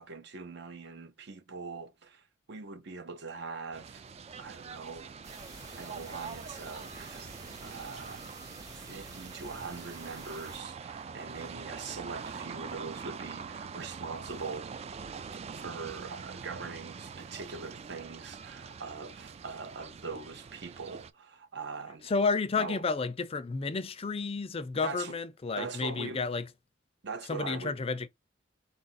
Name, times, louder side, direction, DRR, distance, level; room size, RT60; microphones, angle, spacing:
voice 1, 0.0-4.0 4.4-5.1 5.8-7.3 7.6-8.3 8.7-14.7 15.5-22.1 22.6-22.8 24.8-25.2 25.6-26.2 27.0-27.8, right 4 dB, 65° right, 0.7 m, -42 dB
sound 1, 3.7-21.1, right 5 dB, 35° right, 0.3 m, -44 dB
sound 2, 5.2-10.6, right 2 dB, 20° right, 0.9 m, -49 dB
voice 2, 22.1-26.4 27.3-28.1, left 4 dB, 30° left, 0.4 m, -31 dB
4.0 x 2.5 x 4.1 m
head